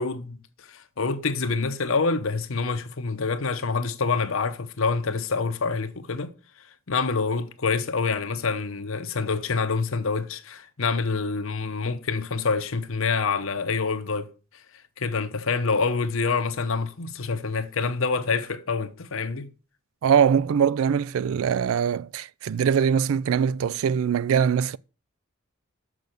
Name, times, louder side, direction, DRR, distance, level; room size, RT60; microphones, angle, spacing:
voice 1, 0.0-6.3 6.9-14.3 15.0-19.5, left 4 dB, 65° left, 0.9 m, -26 dB
voice 2, 20.0-24.8, right 7 dB, 70° right, 0.3 m, -22 dB
6.7 x 6.2 x 6.6 m
head